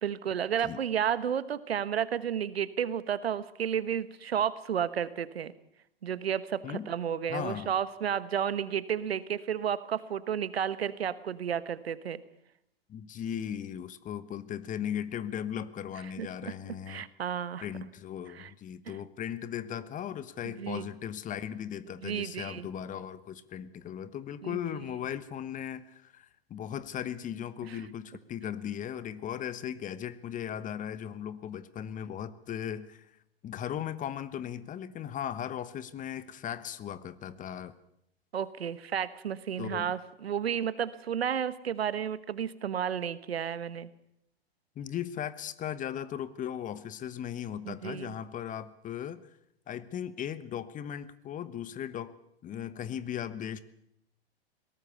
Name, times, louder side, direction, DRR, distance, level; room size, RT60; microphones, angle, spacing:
voice 1, 0.0-5.5 6.0-12.2 16.2-17.7 18.3-18.5 18.9-19.0 20.4-20.9 22.0-22.7 24.4-24.6 27.7-27.8 38.3-43.9 47.6-48.1, right 8 dB, 80° right, 16 dB, 1.3 m, -32 dB
voice 2, 7.3-7.7 12.9-17.1 17.6-33.1 33.4-37.7 39.6-39.9 44.7-49.2 49.7-52.1 52.4-53.6, left 9 dB, 25° left, 16 dB, 1.2 m, -37 dB
21.5 x 18.5 x 7.0 m, 0.74 s
hypercardioid pair, 105°, 30 cm